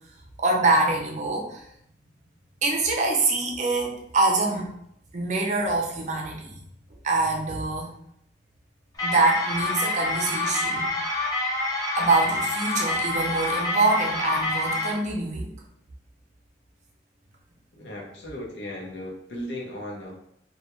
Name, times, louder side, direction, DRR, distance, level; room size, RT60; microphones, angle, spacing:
voice 1, 0.4-1.6 2.6-4.7 5.1-6.5 7.0-7.9 9.0-10.9 11.9-15.5, right 2 dB, 40° right, 0 dB, 0.5 m, -24 dB
sound 1, 9.0-14.9, left 2 dB, 20° left, 0.5 m, -27 dB
voice 2, 17.7-20.1, left 1 dB, 80° left, -2 dB, 0.7 m, -36 dB
2.3 x 2.2 x 2.9 m, 0.73 s
head